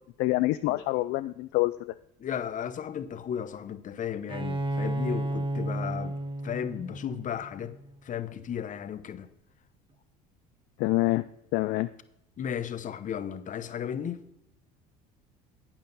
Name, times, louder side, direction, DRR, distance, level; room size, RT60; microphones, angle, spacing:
voice 1, 0.2-1.7 10.8-11.2 11.5-11.9, left 19 dB, 60° left, 0.4 m, -26 dB
voice 2, 2.2-6.2 6.4-7.7 8.0-9.3 12.4-14.2, left 8 dB, 40° left, 0.8 m, -34 dB
Bowed string instrument, 4.3-7.9, right 1 dB, 25° right, 1.2 m, -33 dB
11.5 x 8.8 x 4.1 m
hypercardioid pair, 75°, 20 cm